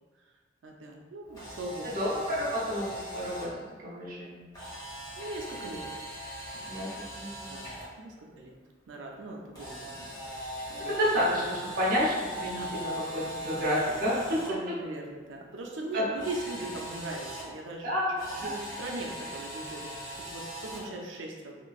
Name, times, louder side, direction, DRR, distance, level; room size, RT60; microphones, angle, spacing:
voice 1, 0.6-2.0 5.2-5.9 6.5-6.8 7.1-7.2 7.5-8.6 8.9-10.1 10.7-11.0 12.5-12.7 14.2-17.9 18.3-21.6, right 2 dB, 85° right, 0 dB, 0.5 m, -40 dB
Camera, 1.3-3.5 4.5-7.8 9.5-14.5 16.2-17.4 18.1-20.9, equal, 20° left, 0.9 m, -40 dB
voice 2, 1.8-3.5 3.8-4.4 6.7-7.6 10.9-14.4 15.9-16.0 17.8-18.1 18.4-18.6, equal, 50° right, -7 dB, 0.8 m, -30 dB
2.9 x 2.5 x 2.3 m, 1.4 s
head